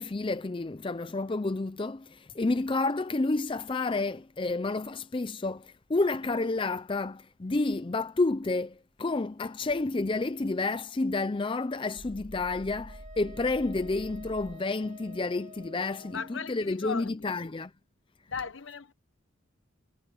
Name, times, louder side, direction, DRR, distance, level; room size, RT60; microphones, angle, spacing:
voice 1, 0.0-8.7 9.0-17.7, left 3 dB, 25° left, 0.4 m, -30 dB
sound 1, 12.0-14.6, right 1 dB, 55° right, 1.2 m, -46 dB
Wind instrument woodwind instrument, 12.9-16.5, left 1 dB, 35° right, 2.5 m, -50 dB
voice 2, 16.1-17.4 18.3-18.9, left 6 dB, 65° left, 1.1 m, -37 dB
head